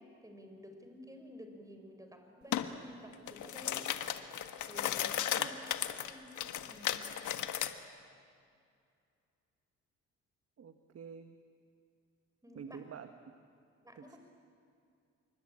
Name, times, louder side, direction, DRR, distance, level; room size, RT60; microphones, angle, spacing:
voice 1, 0.0-3.9 4.7-5.6 5.8-6.3 6.6-7.0 12.4-12.8 13.8-14.2, equal, 10° right, 5 dB, 5.2 m, -52 dB
sound 1, 2.5-2.7 3.1-7.7, left 11 dB, 75° left, 1.5 m, -35 dB
voice 2, 10.6-11.4 12.5-13.1 14.0-14.2, right 7 dB, 50° right, 8 dB, 1.5 m, -48 dB
27.5 x 24.0 x 8.8 m, 2.4 s
cardioid pair, 90°, 30 cm